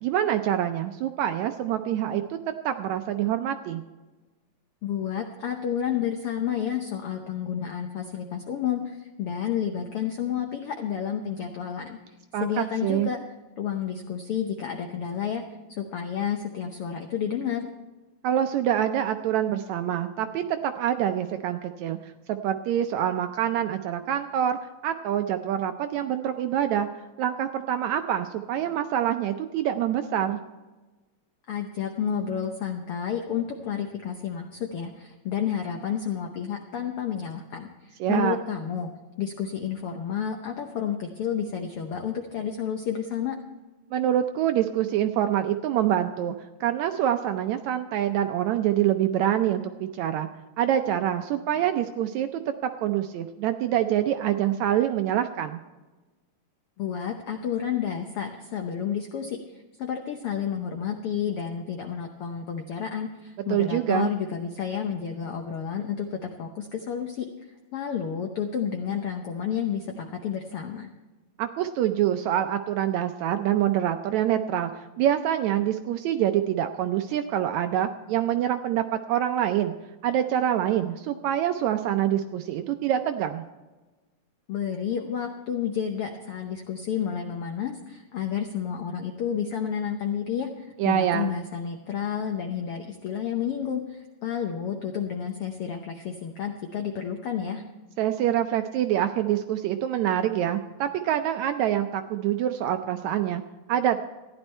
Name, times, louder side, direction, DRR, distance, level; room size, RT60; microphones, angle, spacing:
voice 1, 0.0-2.4 2.6-3.8 12.3-13.1 18.2-22.0 22.3-24.6 24.8-26.9 27.2-30.4 38.0-38.4 43.9-46.3 46.6-50.3 50.6-55.6 63.5-64.1 71.4-79.7 80.0-83.4 90.8-91.3 98.0-103.4 103.7-104.0, right 11 dB, 80° right, 7 dB, 1.7 m, -26 dB
voice 2, 4.8-12.0 12.4-13.2 13.6-15.4 15.7-17.7 31.5-38.9 39.2-43.4 56.8-67.3 67.7-70.9 84.5-97.6, left 8 dB, 75° left, 4 dB, 1.3 m, -30 dB
14.5 x 11.0 x 4.4 m, 1.2 s
omnidirectional pair, 3.7 m